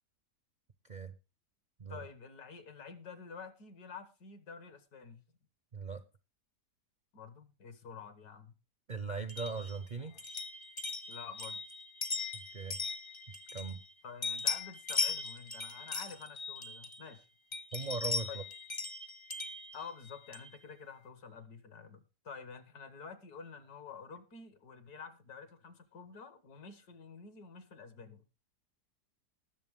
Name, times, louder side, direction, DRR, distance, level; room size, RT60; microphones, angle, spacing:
voice 1, 1.9-5.2 7.1-8.5 11.1-11.6 14.0-17.3 18.3-18.4 19.7-28.2, left 5 dB, 65° left, 1.9 m, -49 dB
voice 2, 5.7-6.0 8.9-10.1 12.3-12.8 13.5-13.8 17.7-18.4, right 4 dB, 50° right, 0.5 m, -39 dB
sound 1, 9.3-13.9 14.2-17.1 17.5-20.6, left 4 dB, 30° left, 0.5 m, -39 dB
19.5 x 6.7 x 3.6 m
omnidirectional pair, 1.8 m